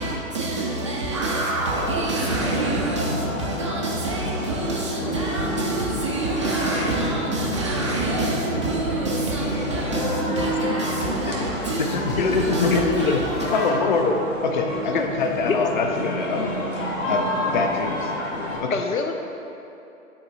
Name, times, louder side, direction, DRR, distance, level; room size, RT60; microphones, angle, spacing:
voice 1, 0.0-13.7, right 2 dB, 25° right, 0.4 m, -27 dB
sound 1, 1.7-18.6, equal, 60° left, 1.3 m, -29 dB
voice 2, 11.8-13.2 13.5-14.1 14.4-16.6 17.1-18.1 18.6-18.8, left 4 dB, 35° left, 0.5 m, -24 dB
voice 3, 18.7-19.1, left 5 dB, 75° left, 0.7 m, -25 dB
9.8 x 4.3 x 2.8 m
figure-of-eight pair, 120°, 42 cm